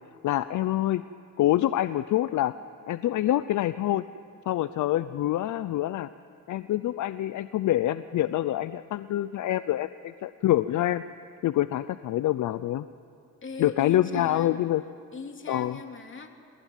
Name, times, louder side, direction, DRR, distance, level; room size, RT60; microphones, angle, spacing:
voice 1, 0.2-1.0 1.4-2.5 2.9-4.1 4.5-6.1 6.5-11.0 11.4-12.9 13.6-14.8 15.5-15.8, left 13 dB, 70° left, 14 dB, 0.7 m, -26 dB
voice 2, 13.4-14.6 15.1-16.3, left 4 dB, 40° left, 4 dB, 3.2 m, -39 dB
28.0 x 19.5 x 9.3 m, 2.6 s
cardioid pair, 90°, 31 cm